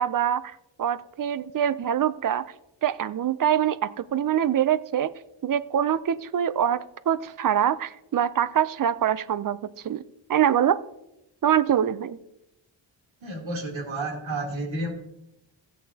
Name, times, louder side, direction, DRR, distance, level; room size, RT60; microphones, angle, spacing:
voice 1, 0.0-2.5 2.8-5.1 5.4-9.6 9.8-10.0 10.3-10.8 11.4-12.2, right 9 dB, 45° right, 16 dB, 0.5 m, -24 dB
voice 2, 13.2-14.9, right 2 dB, 75° right, -1 dB, 3.1 m, -31 dB
16.0 x 8.5 x 2.8 m, 0.88 s
wide cardioid pair, 100°, 47 cm